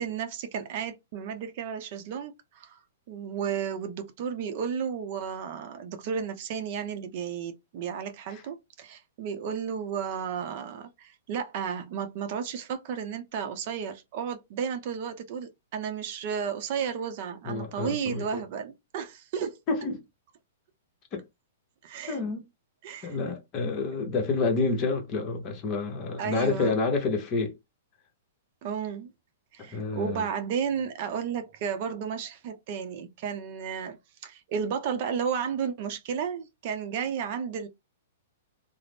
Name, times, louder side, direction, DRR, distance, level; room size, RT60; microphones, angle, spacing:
voice 1, 0.0-2.8 3.1-19.6 21.8-22.2 22.8-23.2 26.2-26.8 28.6-29.1 29.5-34.0 34.2-37.7, right 7 dB, 50° right, 0.6 m, -33 dB
voice 2, 17.4-18.4 19.7-20.0 21.1-21.2 22.1-22.4 23.0-27.5 29.6-30.2, left 3 dB, 35° left, 0.9 m, -29 dB
2.4 x 2.0 x 3.4 m
hypercardioid pair, 135°, 0 cm